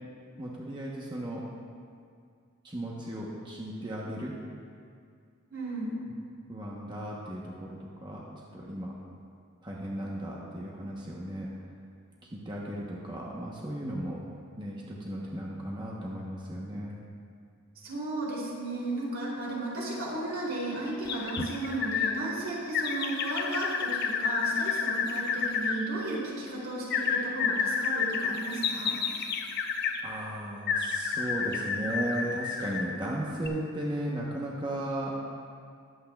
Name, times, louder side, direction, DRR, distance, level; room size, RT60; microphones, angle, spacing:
voice 1, 0.4-1.4 2.6-4.3 6.5-8.2 8.5-8.9 9.6-11.5 12.3-14.2 14.6-16.9 30.0-35.2, right 1 dB, 20° right, -4 dB, 0.9 m, -35 dB
voice 2, 5.5-6.0 17.8-28.9, right 2 dB, 70° right, -5 dB, 2.9 m, -34 dB
sound 1, 21.1-22.1 22.7-25.8 26.9-30.0 30.7-32.9 33.4-33.5, left 5 dB, 50° left, 0.6 m, -30 dB
20.0 x 8.4 x 2.3 m, 2.3 s
head